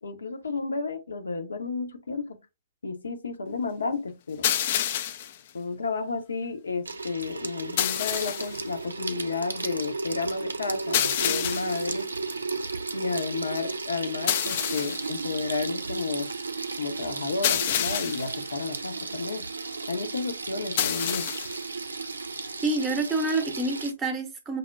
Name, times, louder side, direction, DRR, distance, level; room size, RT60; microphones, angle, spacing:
voice 1, 0.0-2.4 2.8-4.5 5.5-12.1 12.9-16.3 16.8-19.4 19.9-21.3, left 4 dB, 70° left, 0.7 m, -32 dB
sound 1, 4.4-5.4 7.8-8.6 10.9-11.9 14.3-15.1 17.4-18.4 20.8-21.6, left 10 dB, 45° left, 0.3 m, -27 dB
Water tap faucet / Sink (filling or washing), 6.9-23.9, right 3 dB, 75° right, 0.4 m, -34 dB
voice 2, 22.6-24.6, right 2 dB, 15° right, 0.7 m, -27 dB
5.3 x 2.1 x 2.2 m
figure-of-eight pair, 125°, 0 cm